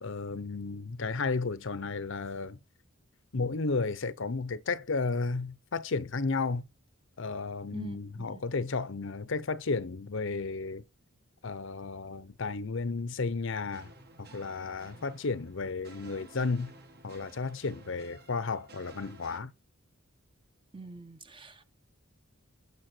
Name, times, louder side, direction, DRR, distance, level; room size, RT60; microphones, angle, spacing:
voice 1, 0.0-2.6 3.3-6.6 7.2-10.8 11.4-13.9 14.2-16.7 17.0-19.5, left 4 dB, 60° left, 0.7 m, -33 dB
voice 2, 7.7-8.3 20.7-21.6, right 3 dB, 25° right, 0.9 m, -45 dB
sound 1, 13.7-19.4, right 2 dB, 50° right, 1.6 m, -53 dB
11.5 x 6.9 x 4.4 m
head